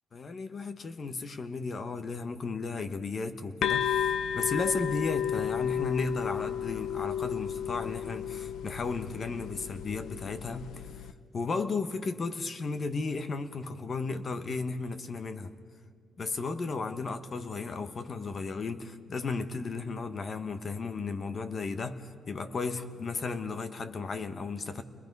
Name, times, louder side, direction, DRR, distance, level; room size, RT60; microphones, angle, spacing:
voice 1, 0.1-4.1 4.3-10.7 11.3-15.5 16.2-24.8, left 4 dB, 35° left, 9 dB, 1.1 m, -34 dB
sound 1, 3.6-11.1, left 9 dB, 80° left, 0.7 m, -33 dB
29.5 x 21.5 x 5.4 m, 2.2 s
cardioid pair, 155°, 0 cm